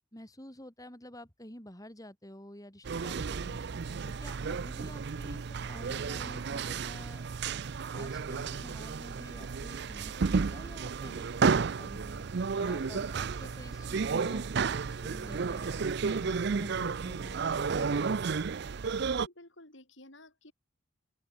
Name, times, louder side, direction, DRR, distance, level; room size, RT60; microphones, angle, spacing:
voice 1, 0.1-3.6 4.1-7.2 7.9-12.3 12.6-14.4 14.8-18.5, left 1 dB, 15° left, 5.5 m, -50 dB
sound 1, 2.8-19.3, right 5 dB, 55° right, 0.5 m, -32 dB
voice 2, 12.6-13.2 18.9-20.5, left 1 dB, 65° left, 6.8 m, -54 dB
open air
head